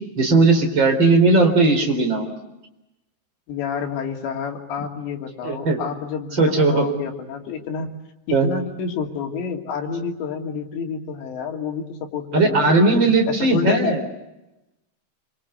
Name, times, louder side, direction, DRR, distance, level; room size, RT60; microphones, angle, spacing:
voice 1, 0.2-2.3 5.4-5.8 6.4-6.8 8.3-8.5 12.3-14.0, right 3 dB, 25° right, 5 dB, 4.5 m, -17 dB
voice 2, 3.5-7.9 8.3-12.9 13.3-14.0, left 6 dB, 70° left, 2 dB, 4.9 m, -29 dB
28.5 x 25.0 x 8.3 m, 0.96 s
omnidirectional pair, 5.3 m